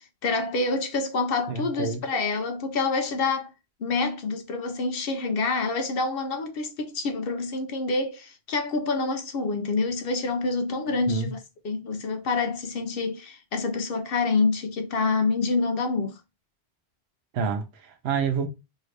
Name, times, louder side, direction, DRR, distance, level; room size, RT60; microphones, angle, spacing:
voice 1, 0.0-3.5 3.8-11.4 11.6-16.2, left 3 dB, 65° left, 0.7 m, -27 dB
voice 2, 1.5-2.0 11.1-11.3 17.3-18.5, right 5 dB, 70° right, 0.9 m, -28 dB
2.8 x 2.7 x 3.2 m
omnidirectional pair, 1.1 m